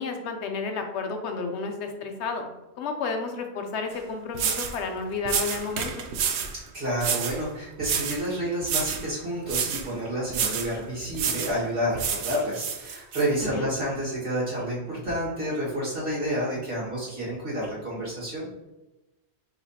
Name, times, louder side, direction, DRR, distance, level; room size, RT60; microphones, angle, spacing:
voice 1, 0.0-5.9 13.4-13.7, left 4 dB, 85° left, 5 dB, 1.0 m, -31 dB
sound 1, 3.9-4.0 4.3-4.8 5.3-6.6 7.0-7.4 7.8-8.3 8.6-9.1 9.5-9.9 10.3-10.7 11.1-11.6 12.0-13.3, right 7 dB, 80° right, 0.8 m, -29 dB
voice 2, 6.7-18.5, equal, 55° right, -7 dB, 2.0 m, -29 dB
5.8 x 3.0 x 2.8 m, 1.0 s
omnidirectional pair, 1.1 m